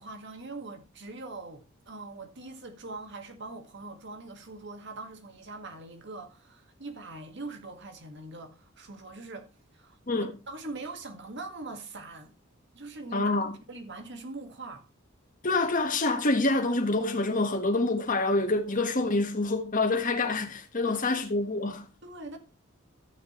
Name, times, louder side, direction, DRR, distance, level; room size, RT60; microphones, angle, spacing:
voice 1, 0.0-9.5 9.7-12.3 12.7-13.4 13.7-14.9 20.8-21.2 22.0-22.4, right 3 dB, 60° right, 1.8 m, -42 dB
voice 2, 13.1-13.6 15.4-21.9, left 2 dB, 40° left, 1.5 m, -26 dB
14.0 x 6.6 x 3.1 m
head